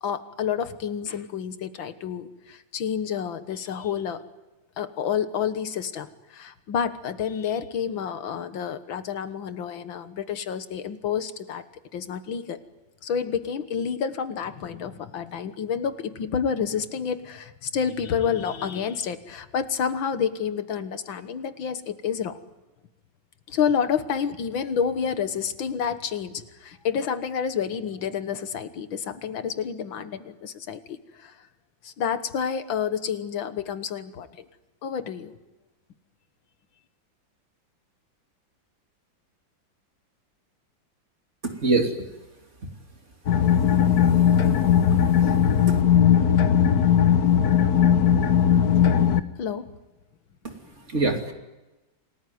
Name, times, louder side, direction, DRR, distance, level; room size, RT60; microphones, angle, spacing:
voice 1, 0.0-4.2 4.8-11.6 11.9-12.6 13.0-22.4 23.5-31.3 31.8-34.5 34.8-35.3 49.4-49.7, left 7 dB, 90° left, 11 dB, 2.1 m, -29 dB
voice 2, 41.6-41.9 44.1-44.2 44.9-45.0 50.9-51.3, right 3 dB, 35° right, 3 dB, 3.1 m, -23 dB
sound 1, 43.3-49.2, left 8 dB, 55° left, 1.4 m, -18 dB
28.0 x 19.0 x 9.5 m, 1.1 s
omnidirectional pair, 2.1 m